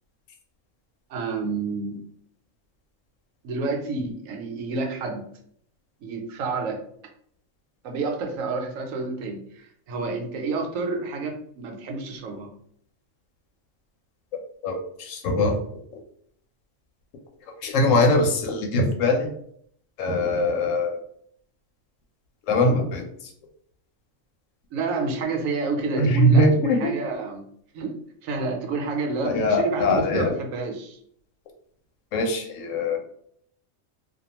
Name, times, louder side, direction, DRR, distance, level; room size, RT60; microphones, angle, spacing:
voice 1, 1.1-2.0 3.4-5.3 6.0-6.8 7.8-12.5 24.7-27.5 27.7-31.0, right 3 dB, 80° right, 3 dB, 1.0 m, -29 dB
voice 2, 14.6-15.6 17.6-19.3 20.0-21.0 22.5-23.0 26.0-26.9 29.2-30.3 32.1-33.0, left 1 dB, 75° left, 3 dB, 0.9 m, -21 dB
2.4 x 2.2 x 2.8 m, 0.66 s
omnidirectional pair, 1.4 m